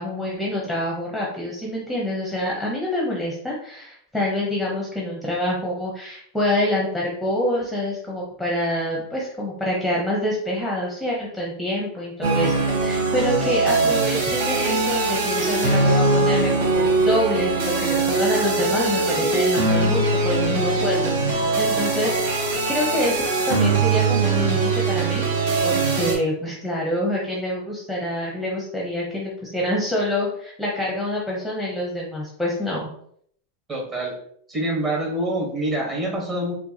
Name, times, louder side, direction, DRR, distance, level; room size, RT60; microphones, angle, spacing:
voice 1, 0.0-25.2 25.6-32.9, left 1 dB, ahead, -4 dB, 0.8 m, -26 dB
sound 1, 12.2-26.1, right 3 dB, 70° right, 1.1 m, -21 dB
voice 2, 33.7-34.1 34.5-36.5, right 1 dB, 25° right, -1 dB, 1.2 m, -26 dB
4.4 x 2.3 x 2.8 m, 0.64 s
supercardioid pair, 135°, 0 cm